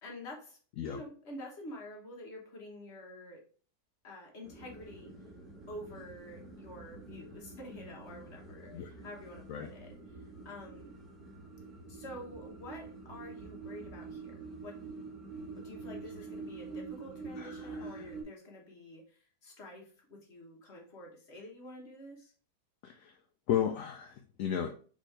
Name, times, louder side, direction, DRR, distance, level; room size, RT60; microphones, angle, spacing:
voice 1, 0.0-0.6 0.9-3.4 4.0-5.1 5.7-9.9 10.4-10.9 11.9-15.0 15.3-22.3, left 1 dB, 40° left, 0 dB, 1.4 m, -48 dB
sound 1, 4.4-18.2, right 3 dB, 30° right, 1.6 m, -46 dB
voice 2, 17.4-18.0 22.8-23.2 23.5-24.7, left 9 dB, 70° left, 4 dB, 0.8 m, -34 dB
4.2 x 3.6 x 3.3 m, 0.40 s
omnidirectional pair, 1.8 m